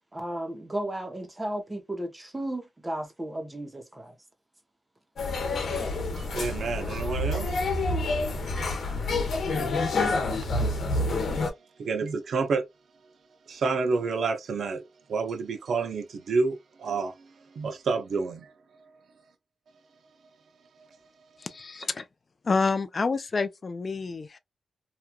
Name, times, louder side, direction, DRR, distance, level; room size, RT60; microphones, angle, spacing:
voice 1, 0.1-4.1, right 1 dB, 15° right, 0.7 m, -34 dB
sound 1, 5.2-11.5, left 2 dB, 70° left, 0.9 m, -28 dB
voice 2, 6.2-7.6 11.3-11.4 11.8-12.7 13.5-14.8 15.1-17.2 17.5-18.5, right 4 dB, 70° right, 0.5 m, -29 dB
voice 3, 21.4-22.1 22.4-24.4, left 4 dB, 40° left, 0.3 m, -28 dB
2.9 x 2.3 x 2.2 m
wide cardioid pair, 130°, 0 cm